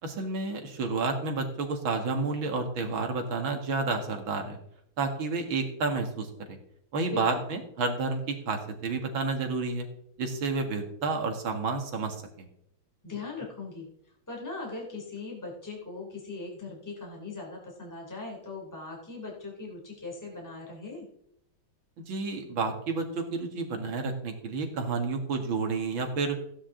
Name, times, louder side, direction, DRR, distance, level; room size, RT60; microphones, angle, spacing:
voice 1, 0.0-4.6 5.0-6.6 6.9-9.9 10.2-12.5 22.0-26.4, right 4 dB, 65° right, 4 dB, 2.6 m, -30 dB
voice 2, 13.0-13.9 14.3-21.1, left 3 dB, 10° left, -2 dB, 3.1 m, -39 dB
15.5 x 10.0 x 3.8 m, 0.73 s
omnidirectional pair, 2.4 m